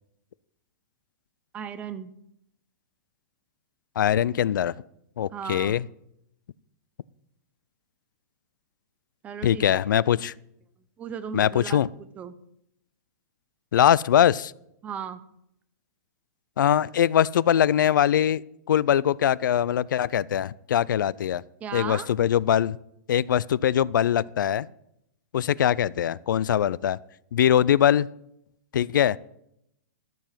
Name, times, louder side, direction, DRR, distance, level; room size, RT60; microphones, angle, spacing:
voice 1, 1.5-2.1 5.3-5.8 9.2-9.8 11.0-11.8 12.2-12.3 14.8-15.2 21.6-22.1, right 7 dB, 15° right, 12 dB, 0.6 m, -36 dB
voice 2, 4.0-4.7 5.2-5.8 9.4-10.3 11.3-11.9 13.7-14.5 16.6-18.4 18.7-21.4 21.7-22.8 23.1-24.7 25.3-27.0 27.3-28.1 28.7-29.2, left 10 dB, 90° left, 22 dB, 0.4 m, -22 dB
13.0 x 7.0 x 5.8 m, 0.77 s
hypercardioid pair, 165°, 10 cm